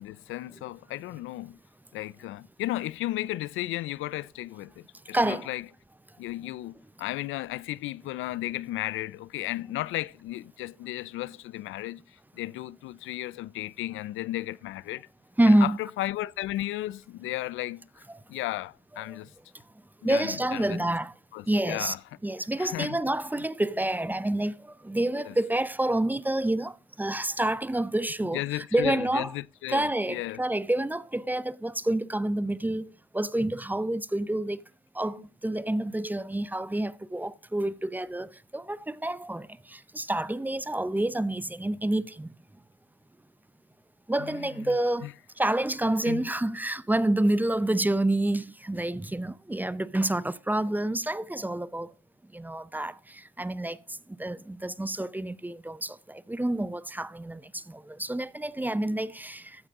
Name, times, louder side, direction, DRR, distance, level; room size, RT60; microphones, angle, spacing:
voice 1, 0.0-1.6 1.9-5.6 6.2-15.1 15.5-17.9 18.3-19.3 20.0-21.0 21.3-22.0 22.6-23.0 25.1-25.3 28.3-30.4 44.2-44.7 45.0-45.1 46.1-46.3, left 16 dB, 85° left, 0.5 m, -34 dB
voice 2, 5.1-5.5 15.4-15.8 19.1-19.2 20.0-21.1 21.5-22.0 22.2-24.5 24.8-29.3 29.7-34.6 34.9-42.3 44.1-45.1 45.4-51.9 52.3-53.8 54.2-59.6, right 1 dB, 10° right, 0.6 m, -28 dB
14.5 x 10.0 x 3.7 m
cardioid pair, 90°, 20 cm